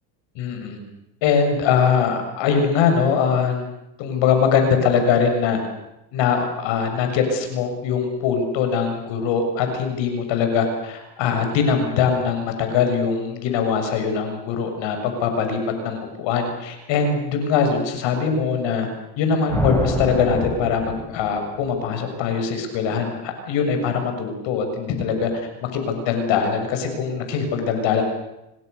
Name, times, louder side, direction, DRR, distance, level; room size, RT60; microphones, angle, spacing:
voice 1, 0.4-0.8 1.2-3.7 4.0-5.6 6.1-18.9 19.2-28.0, left 6 dB, 60° left, 5 dB, 7.0 m, -22 dB
sound 1, 19.5-21.8, left 1 dB, 5° left, 6.3 m, -27 dB
28.0 x 25.0 x 6.8 m, 0.92 s
hypercardioid pair, 90°, 50 cm